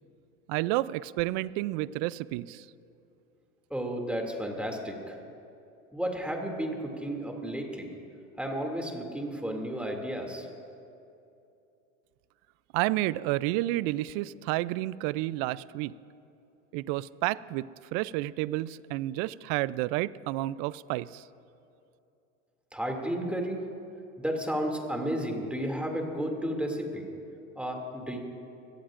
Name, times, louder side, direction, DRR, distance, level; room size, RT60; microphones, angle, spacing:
voice 1, 0.5-2.7 12.7-15.9 16.7-17.7 17.9-21.2, right 17 dB, 55° right, 19 dB, 0.5 m, -30 dB
voice 2, 3.7-5.2 5.9-7.9 8.4-10.5 22.7-23.6 24.2-27.1 27.6-28.2, equal, 5° right, 1 dB, 2.5 m, -32 dB
26.0 x 18.0 x 2.5 m, 2.7 s
hypercardioid pair, 105°, 39 cm